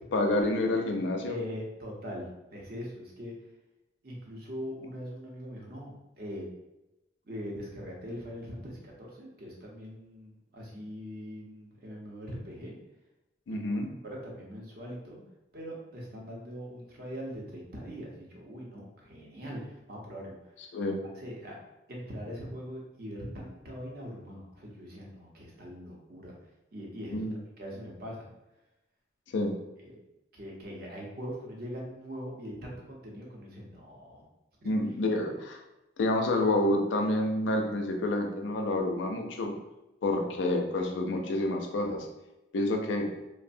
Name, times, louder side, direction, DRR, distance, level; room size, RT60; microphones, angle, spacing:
voice 1, 0.1-1.4 13.5-13.9 20.7-21.0 27.1-27.3 29.3-29.5 34.6-35.6 36.0-39.5 40.0-42.1 42.5-43.1, left 1 dB, 85° left, 3 dB, 0.4 m, -28 dB
voice 2, 1.3-3.3 4.0-6.4 7.2-12.7 13.5-15.2 15.5-20.7 21.1-21.6 21.9-26.4 26.7-27.3 27.6-28.3 29.8-29.9 30.3-34.2 34.6-34.7, equal, 55° right, -2 dB, 0.7 m, -42 dB
3.0 x 2.0 x 2.5 m, 0.95 s
head